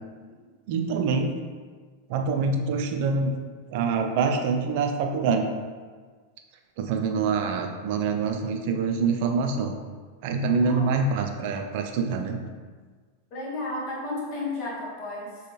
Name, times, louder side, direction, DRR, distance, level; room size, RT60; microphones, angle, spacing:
voice 1, 0.7-1.4 2.1-3.4 3.7-5.5 6.8-9.8 10.2-12.4, right 4 dB, 50° right, 4 dB, 0.5 m, -25 dB
voice 2, 10.6-10.9 13.3-15.4, left 2 dB, 40° left, -4 dB, 1.4 m, -33 dB
6.5 x 2.4 x 3.1 m, 1.5 s
figure-of-eight pair, 90°, 0 cm